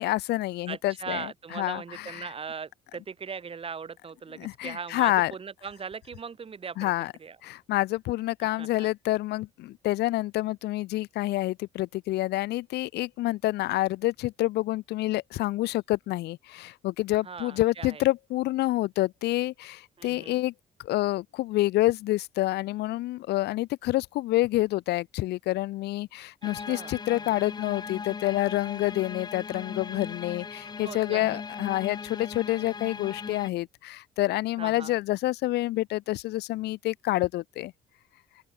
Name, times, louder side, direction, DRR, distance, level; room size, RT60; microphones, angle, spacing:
voice 1, 0.0-2.3 4.4-5.3 6.8-7.1 7.4-20.5 20.8-37.7, left 17 dB, 80° left, 1.6 m, -28 dB
voice 2, 0.7-6.9 7.2-7.4 8.4-8.9 17.2-18.1 20.0-20.4 26.4-27.5 30.6-31.4 34.6-35.0, right 6 dB, 35° right, 7.9 m, -40 dB
sound 1, 26.4-33.5, left 5 dB, 25° left, 0.7 m, -38 dB
open air
cardioid pair, 110°, 17 cm